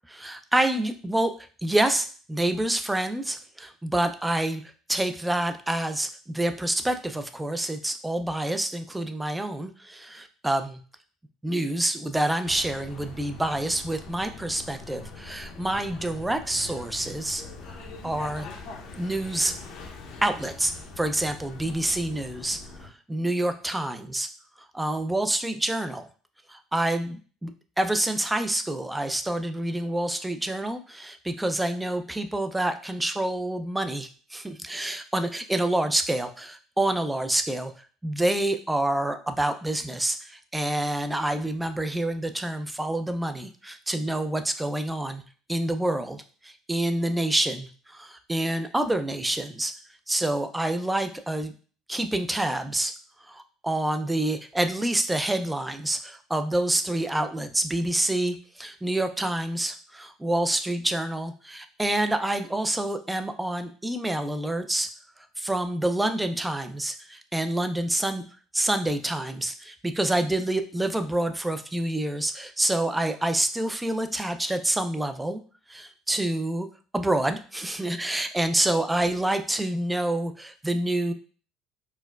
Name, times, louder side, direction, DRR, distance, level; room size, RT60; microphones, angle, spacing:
voice 1, 0.1-1.3 1.6-4.6 4.9-10.8 11.4-17.4 17.7-17.8 18.0-18.5 18.9-19.5 20.2-24.3 24.7-26.0 26.5-45.2 45.5-49.7 50.1-51.5 51.9-52.9 53.3-64.9 65.4-68.2 68.5-75.4 75.7-76.7 76.9-81.1, right 1 dB, 10° right, 8 dB, 0.3 m, -27 dB
sound 1, 12.4-22.9, left 3 dB, 65° left, 0.6 m, -43 dB
4.3 x 2.0 x 2.2 m, 0.40 s
cardioid pair, 110°, 0 cm